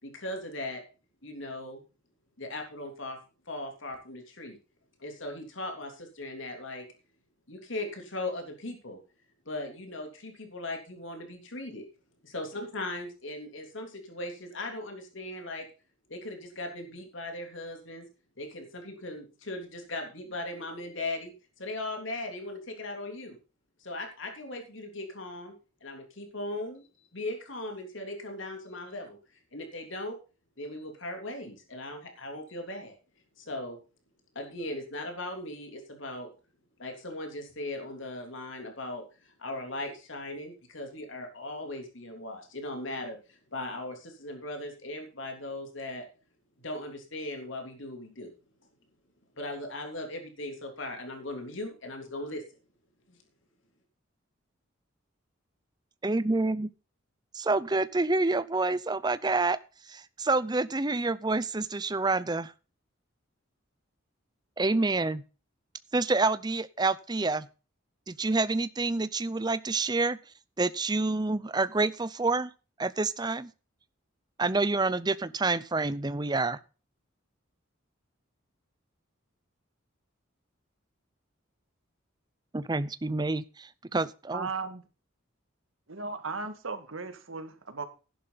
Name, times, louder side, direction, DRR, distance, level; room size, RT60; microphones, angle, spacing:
voice 1, 0.0-0.8 1.2-1.8 2.4-3.2 3.5-4.6 5.0-6.9 7.5-9.0 9.4-11.8 12.2-15.6 16.1-18.1 18.4-21.3 21.6-23.4 23.8-25.5 25.8-26.9 27.1-29.2 29.5-30.2 30.6-33.0 33.4-33.8 34.3-36.3 36.8-46.1 46.6-48.3 49.4-52.4 53.1-53.2, left 2 dB, 70° left, 3.3 m, -38 dB
voice 2, 56.0-56.7 57.3-59.6 59.9-62.5 64.6-65.2 65.9-67.5 68.1-70.2 70.6-72.5 72.8-73.5 74.4-76.6 82.5-84.5, right 3 dB, 20° right, 0.6 m, -28 dB
voice 3, 84.3-84.8 85.9-87.8, right 4 dB, 80° right, 1.9 m, -36 dB
12.5 x 11.0 x 4.0 m
head